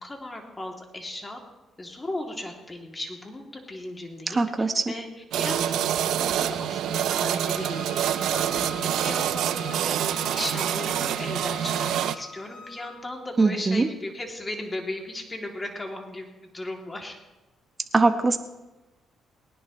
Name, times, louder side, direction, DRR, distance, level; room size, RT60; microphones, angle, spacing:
voice 1, 0.0-1.4 1.8-4.4 4.9-5.1 5.4-10.0 10.3-16.3 16.5-17.2, left 1 dB, 20° left, 1 dB, 2.8 m, -36 dB
voice 2, 4.3-4.8 13.4-13.9 17.9-18.4, right 3 dB, 30° right, 7 dB, 1.1 m, -21 dB
sound 1, 5.3-12.2, right 10 dB, 80° right, 0.6 m, -26 dB
Bowed string instrument, 7.3-12.9, left 4 dB, 55° left, 4.8 m, -42 dB
19.0 x 18.5 x 3.2 m, 1.1 s
cardioid pair, 90°, 0 cm